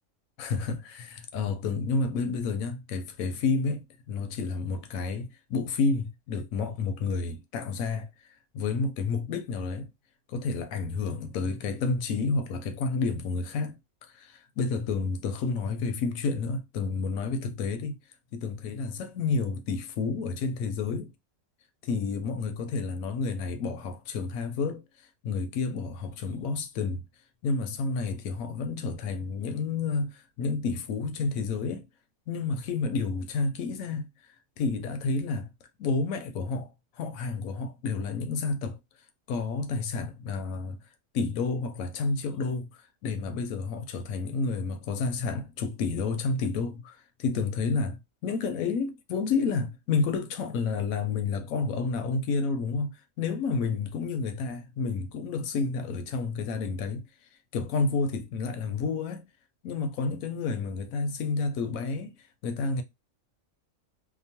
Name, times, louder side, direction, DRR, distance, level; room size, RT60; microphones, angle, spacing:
voice 1, 0.4-8.1 8.5-9.9 10.3-18.0 18.3-21.1 21.8-24.8 25.2-27.0 27.4-31.9 32.3-34.1 34.6-35.5 35.8-38.8 39.3-40.8 41.1-48.0 48.2-57.0 57.5-59.2 59.6-62.1 62.4-62.8, left 4 dB, 90° left, 1.0 m, -30 dB
2.9 x 2.1 x 2.7 m
omnidirectional pair, 1.4 m